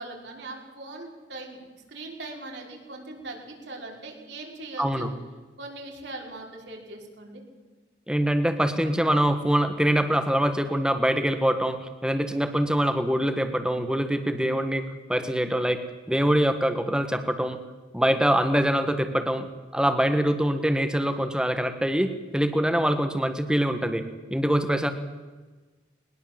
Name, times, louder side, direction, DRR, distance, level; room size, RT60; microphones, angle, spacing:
voice 1, 0.0-5.1 5.6-7.4, right 2 dB, 70° right, 0 dB, 5.3 m, -40 dB
voice 2, 4.8-5.1 8.1-14.8 15.1-15.8 16.1-17.6 17.9-24.0 24.3-24.9, equal, 5° right, 8 dB, 1.6 m, -24 dB
21.0 x 21.0 x 7.7 m, 1.3 s
head